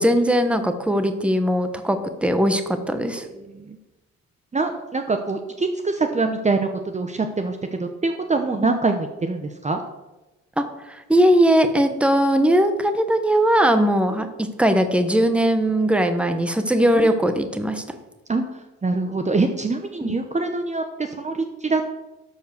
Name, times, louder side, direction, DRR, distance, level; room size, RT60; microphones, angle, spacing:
voice 1, 0.0-3.3 8.6-8.7 10.6-18.0 20.0-20.1, equal, 5° right, 8 dB, 1.1 m, -20 dB
voice 2, 4.5-6.7 6.9-9.8 16.9-17.1 18.3-18.4 18.8-21.9, right 3 dB, 25° right, 5 dB, 0.9 m, -24 dB
12.0 x 4.7 x 6.5 m, 1.0 s
cardioid pair, 90°, 30 cm